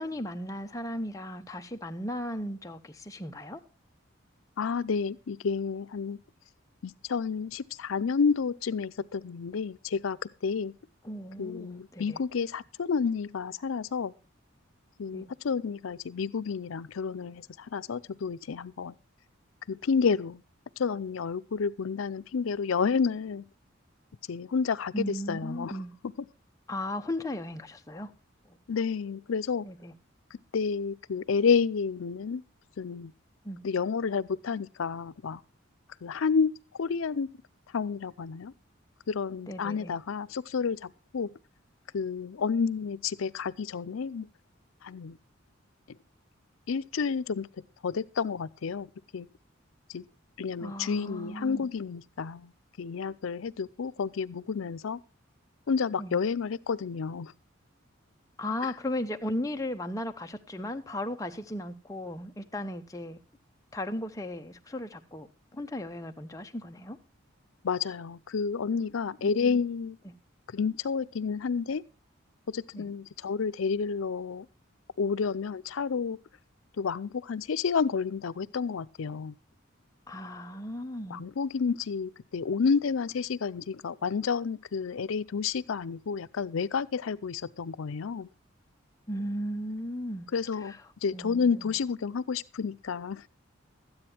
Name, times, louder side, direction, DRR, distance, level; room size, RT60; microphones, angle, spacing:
voice 1, 0.0-3.6 11.0-12.2 15.1-15.3 24.9-26.0 26.7-28.1 28.5-28.6 29.6-29.9 33.4-33.6 39.5-40.0 50.6-51.7 56.0-56.2 58.4-63.2 63.7-67.0 69.4-69.6 70.0-70.1 72.7-72.8 80.1-81.2 89.1-90.3 90.6-90.8 91.1-91.8, left 1 dB, 15° left, 0.7 m, -36 dB
voice 2, 4.6-6.2 6.8-10.2 10.4-10.7 11.4-14.1 15.0-18.9 19.7-20.4 20.8-23.4 24.3-25.7 28.7-29.7 30.5-32.4 32.8-33.1 33.6-35.4 36.0-36.5 36.8-37.3 37.7-38.5 39.1-41.3 41.9-44.3 44.8-45.2 46.7-47.5 47.8-49.3 49.9-50.0 50.4-52.5 52.8-55.0 55.7-57.3 67.6-70.0 70.5-71.8 72.5-74.5 75.0-76.2 76.8-79.4 81.1-88.3 90.3-90.7 91.0-93.3, left 5 dB, 80° left, 0.5 m, -30 dB
13.0 x 9.6 x 4.4 m
head